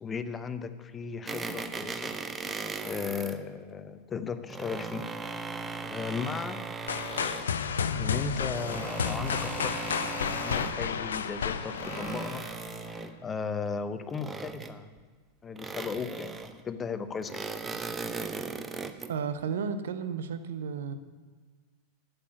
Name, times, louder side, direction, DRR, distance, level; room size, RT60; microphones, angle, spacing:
voice 1, 0.0-2.1 2.8-5.1 5.8-6.6 7.9-12.5 13.2-15.0 15.4-17.5, left 5 dB, 20° left, 11 dB, 0.7 m, -36 dB
sound 1, 1.3-3.4 4.3-7.5 8.4-10.8 11.5-13.2 14.1-15.0 15.6-16.6 17.2-19.1, right 4 dB, 15° right, 0.7 m, -38 dB
sound 2, 6.9-12.8, left 6 dB, 65° left, 0.6 m, -32 dB
voice 2, 19.1-21.0, right 6 dB, 60° right, 11 dB, 0.8 m, -33 dB
8.4 x 8.0 x 8.3 m, 1.4 s
figure-of-eight pair, 90°, 0 cm